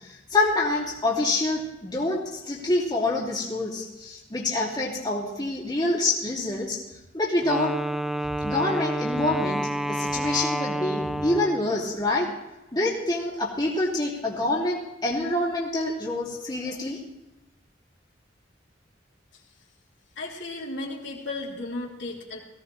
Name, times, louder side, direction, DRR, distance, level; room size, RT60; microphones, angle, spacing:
voice 1, 0.1-6.8 7.1-7.8 8.4-12.3 12.7-17.0, left 2 dB, 25° left, -4 dB, 2.6 m, -26 dB
Wind instrument woodwind instrument, 7.4-11.8, equal, ahead, 0.4 m, -29 dB
voice 2, 20.1-22.4, left 2 dB, 75° left, -3 dB, 3.3 m, -34 dB
18.5 x 16.5 x 3.3 m, 0.96 s
head